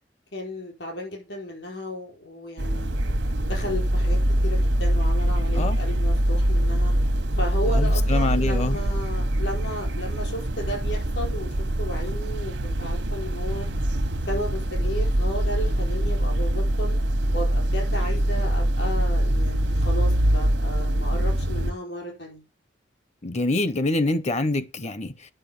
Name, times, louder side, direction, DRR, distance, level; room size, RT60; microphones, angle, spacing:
voice 1, 0.3-3.0 3.4-6.9 7.4-13.7 14.3-17.0 17.3-22.4, equal, 70° left, 4.7 m, -34 dB
sound 1, 2.6-21.7, right 1 dB, 85° right, 1.2 m, -23 dB
voice 2, 7.7-8.8 23.2-25.3, left 2 dB, 40° left, 0.7 m, -25 dB
10.0 x 5.5 x 7.0 m
head